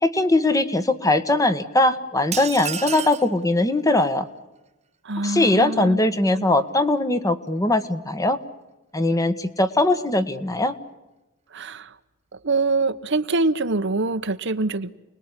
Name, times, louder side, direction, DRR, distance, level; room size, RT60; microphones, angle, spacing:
voice 1, 0.0-4.3 5.2-8.4 8.9-10.7, left 2 dB, 15° left, 1.5 m, -20 dB
sound 1, 2.3-3.3, right 8 dB, 35° right, 1.2 m, -30 dB
voice 2, 5.0-6.0 6.3-6.5 11.5-11.9 12.4-14.9, right 3 dB, 60° right, 1.1 m, -24 dB
29.5 x 20.5 x 9.8 m
head